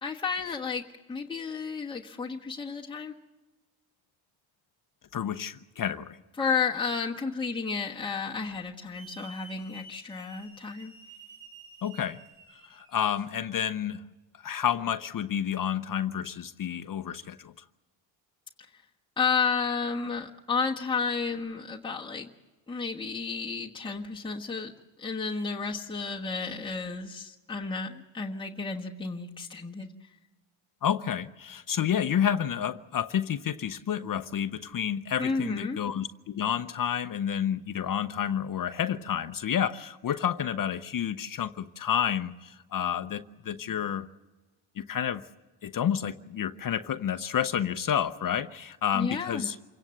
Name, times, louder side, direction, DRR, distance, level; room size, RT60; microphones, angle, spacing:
voice 1, 0.0-3.1 6.4-10.9 19.2-22.3 22.7-24.7 25.0-29.9 35.2-35.8 48.9-49.5, left 5 dB, 10° left, -3 dB, 1.3 m, -32 dB
voice 2, 5.1-6.2 11.8-12.2 12.7-14.0 14.4-17.5 30.8-44.1 44.8-45.2 45.6-49.6, left 9 dB, 45° left, 10 dB, 0.7 m, -30 dB
Hiss / Alarm, 8.9-13.7, right 3 dB, 65° right, 7.7 m, -51 dB
27.5 x 17.5 x 7.8 m, 1.2 s
cardioid pair, 115°, 47 cm